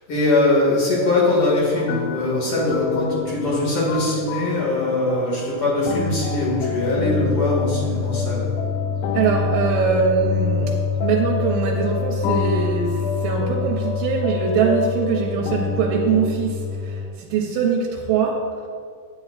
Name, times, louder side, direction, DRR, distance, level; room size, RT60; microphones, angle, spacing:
voice 1, 0.1-8.5, left 2 dB, 45° left, -4 dB, 2.4 m, -21 dB
sound 1, 1.7-17.1, left 5 dB, 90° left, 2.3 m, -26 dB
voice 2, 9.1-18.4, right 6 dB, 90° right, -2 dB, 2.5 m, -22 dB
9.2 x 8.9 x 2.4 m, 2.1 s
omnidirectional pair, 3.9 m